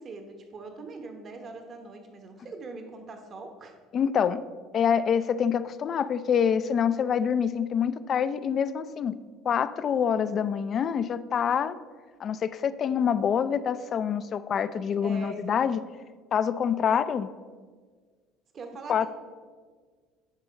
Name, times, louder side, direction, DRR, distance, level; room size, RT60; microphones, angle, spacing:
voice 1, 0.0-3.8 15.0-15.6 18.5-19.1, right 3 dB, 40° right, 5 dB, 1.0 m, -42 dB
voice 2, 3.9-4.4 4.7-9.2 9.5-11.8 12.2-15.8 16.3-17.3 18.9-19.1, left 7 dB, 45° left, 15 dB, 0.4 m, -26 dB
10.5 x 3.7 x 5.1 m, 1.5 s
supercardioid pair, 100°, 0 cm